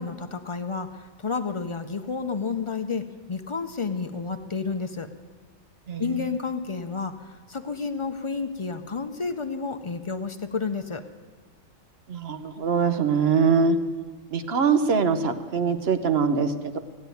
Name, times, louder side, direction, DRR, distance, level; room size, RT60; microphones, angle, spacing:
voice 1, 0.0-5.1 6.0-11.0, left 5 dB, 45° left, 7 dB, 0.4 m, -31 dB
voice 2, 5.9-6.2 12.1-13.8 14.3-16.8, right 5 dB, 50° right, 9 dB, 1.0 m, -23 dB
16.0 x 8.6 x 9.2 m, 1.5 s
omnidirectional pair, 1.5 m